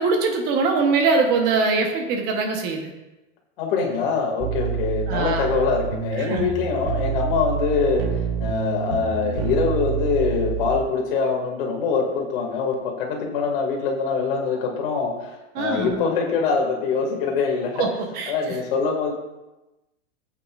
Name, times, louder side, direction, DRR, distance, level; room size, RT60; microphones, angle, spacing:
voice 1, 0.0-2.9 5.1-5.5 6.2-6.5 15.5-16.0 17.8-17.9 18.1-18.3, right 4 dB, 25° right, 3 dB, 1.1 m, -22 dB
voice 2, 3.6-8.0 8.4-17.9 18.3-19.1, left 5 dB, 45° left, 0 dB, 2.3 m, -24 dB
sound 1, 4.4-10.8, right 8 dB, 50° right, 1.0 m, -27 dB
14.5 x 8.6 x 2.5 m, 1.0 s
supercardioid pair, 175°, 37 cm